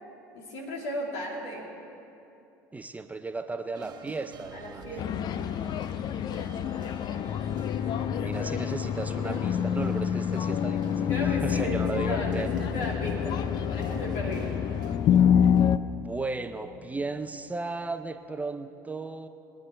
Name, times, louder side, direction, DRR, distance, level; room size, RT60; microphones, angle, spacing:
voice 1, 0.3-1.7 4.5-5.1 7.9-8.2 9.2-9.5 11.1-14.6, equal, 65° left, -2 dB, 2.7 m, -36 dB
voice 2, 2.7-4.9 8.0-12.7 15.9-19.3, right 3 dB, 15° right, 9 dB, 0.7 m, -35 dB
sound 1, 3.7-15.0, right 5 dB, 45° right, 1.1 m, -47 dB
sound 2, 5.0-15.8, left 9 dB, 45° left, 0.4 m, -27 dB
22.0 x 9.7 x 4.5 m, 2.8 s
hypercardioid pair, 65°, 10 cm